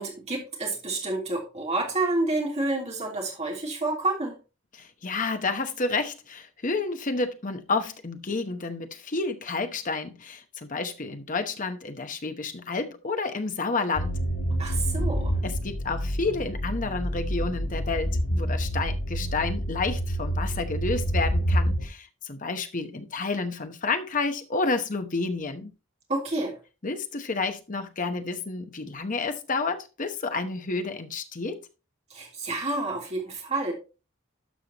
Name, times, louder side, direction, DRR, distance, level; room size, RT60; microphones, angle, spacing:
voice 1, 0.0-4.4 14.6-15.4 26.1-26.5 32.1-33.7, right 2 dB, 35° right, 3.2 m, -29 dB
voice 2, 4.7-14.2 15.4-25.7 26.8-31.6, left 3 dB, 40° left, 0.9 m, -30 dB
sound 1, 13.9-21.9, equal, 85° left, 1.6 m, -28 dB
12.0 x 5.7 x 2.9 m
head